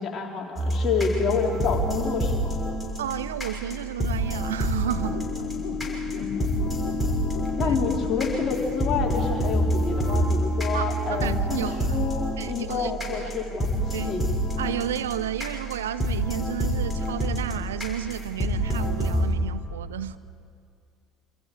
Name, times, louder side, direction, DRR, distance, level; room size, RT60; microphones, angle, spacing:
voice 1, 0.0-2.5 6.2-6.5 7.6-14.3, left 5 dB, 35° left, 3.9 m, -28 dB
sound 1, 0.6-19.3, right 1 dB, 5° left, 6.2 m, -28 dB
voice 2, 3.0-5.2 7.6-7.8 10.7-10.8 11.2-12.1 12.4-13.3 13.9-14.2 14.6-20.2, right 10 dB, 70° right, 0.6 m, -32 dB
sound 2, 5.0-11.6, left 8 dB, 50° left, 1.2 m, -33 dB
27.5 x 27.0 x 4.8 m
figure-of-eight pair, 60°, 0 cm